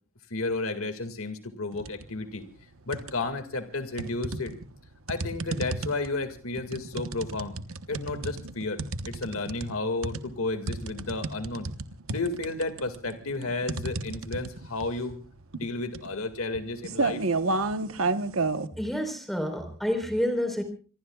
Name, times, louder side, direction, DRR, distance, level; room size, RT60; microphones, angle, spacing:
voice 1, 0.3-2.4 2.9-4.5 5.1-7.6 7.9-11.7 12.1-15.2 15.5-17.2, left 3 dB, 85° left, 7 dB, 2.1 m, -32 dB
sound 1, 1.7-2.1 2.5-3.4 4.0-18.7, right 3 dB, 80° right, 1.1 m, -32 dB
voice 2, 18.8-20.6, equal, ahead, 6 dB, 4.2 m, -28 dB
26.0 x 23.0 x 2.4 m, 0.38 s
head